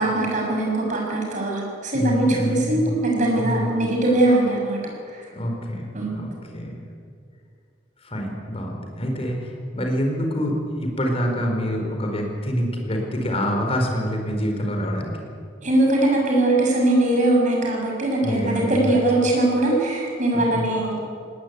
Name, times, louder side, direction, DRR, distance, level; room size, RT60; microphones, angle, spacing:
voice 1, 0.0-4.8 5.9-6.2 15.6-20.9, right 2 dB, 40° right, -1 dB, 6.6 m, -21 dB
voice 2, 1.9-2.9 3.4-3.7 5.3-6.9 8.0-15.2 18.2-19.0 20.3-20.6, equal, 35° left, 2 dB, 4.5 m, -26 dB
19.5 x 19.0 x 9.5 m, 2.3 s
head